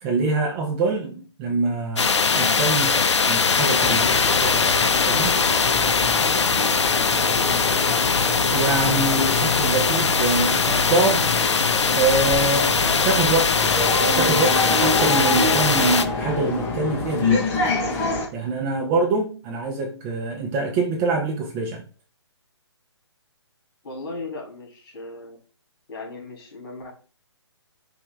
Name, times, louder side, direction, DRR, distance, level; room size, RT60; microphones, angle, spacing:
voice 1, 0.0-5.3 8.5-11.3 11.9-17.7 18.3-21.8, right 3 dB, 20° right, 1 dB, 0.7 m, -25 dB
sound 1, 2.0-16.0, left 5 dB, 75° left, 0.5 m, -21 dB
sound 2, 3.8-18.3, left 2 dB, 15° left, 0.8 m, -27 dB
voice 2, 7.1-8.1 23.8-25.4 25.9-26.9, left 2 dB, 50° left, -1 dB, 2.5 m, -37 dB
5.4 x 2.8 x 3.4 m, 0.38 s
figure-of-eight pair, 140°, 15 cm